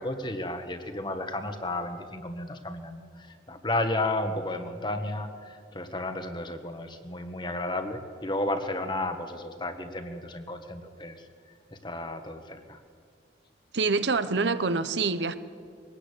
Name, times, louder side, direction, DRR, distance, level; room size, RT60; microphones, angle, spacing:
voice 1, 0.0-3.0 3.5-11.2 11.8-12.8, left 2 dB, 25° left, 1.6 m, -32 dB
voice 2, 13.7-15.3, right 4 dB, 75° right, 1.0 m, -26 dB
22.5 x 18.5 x 8.5 m
head